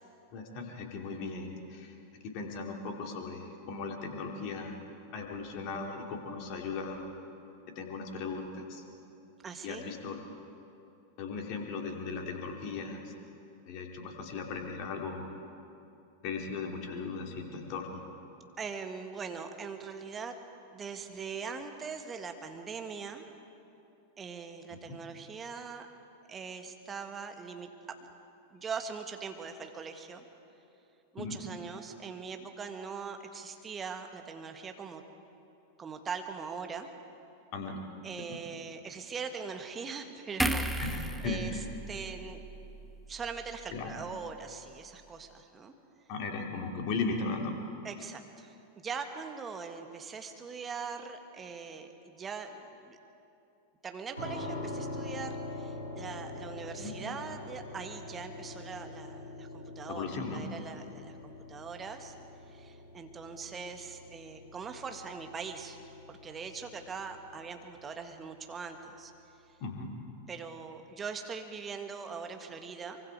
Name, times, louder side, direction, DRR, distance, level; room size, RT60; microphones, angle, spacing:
voice 1, 0.3-2.0 2.2-4.8 5.1-7.1 7.7-8.8 9.6-10.2 11.2-13.1 13.7-15.3 16.2-18.0 24.7-25.0 31.2-31.4 37.5-37.8 38.3-38.4 40.8-41.6 43.7-43.9 46.1-47.6 56.8-56.9 59.9-60.4 69.6-69.9, left 4 dB, 45° left, 2 dB, 2.7 m, -37 dB
voice 2, 9.4-9.8 18.6-20.4 20.7-23.2 24.2-25.9 26.3-27.7 28.5-30.2 31.1-35.0 35.8-36.9 38.0-40.9 41.2-41.5 41.9-42.4 43.1-45.7 47.8-53.0 53.8-62.1 62.5-65.8 66.1-69.1 70.3-73.0, right 5 dB, 20° right, 5 dB, 1.7 m, -41 dB
sound 1, 40.4-43.8 44.1-44.3, right 1 dB, 5° right, 1.0 m, -35 dB
sound 2, 54.1-69.0, left 2 dB, 90° right, 4.9 m, -44 dB
24.0 x 24.0 x 4.7 m, 2.8 s
figure-of-eight pair, 90°, 0 cm